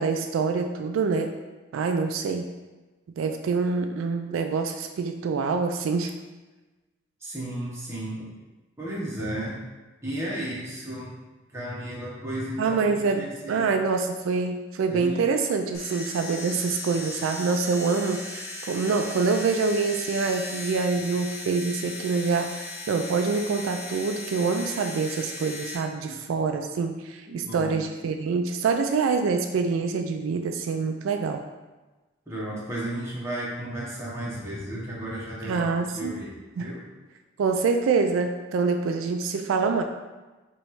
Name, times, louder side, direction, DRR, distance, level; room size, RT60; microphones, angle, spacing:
voice 1, 0.0-1.3 1.7-2.5 3.2-6.1 12.6-31.4 35.4-36.2 36.6-36.7 37.4-39.8, right 4 dB, 80° right, 6 dB, 0.3 m, -26 dB
voice 2, 7.2-8.2 8.8-9.6 10.0-11.1 11.5-13.7 14.9-15.2 26.1-26.2 27.3-27.8 32.3-36.8, right 1 dB, 15° right, -6 dB, 1.0 m, -34 dB
sound 1, 15.7-25.8, left 2 dB, 50° left, 0.9 m, -37 dB
3.1 x 3.0 x 4.7 m, 1.2 s
head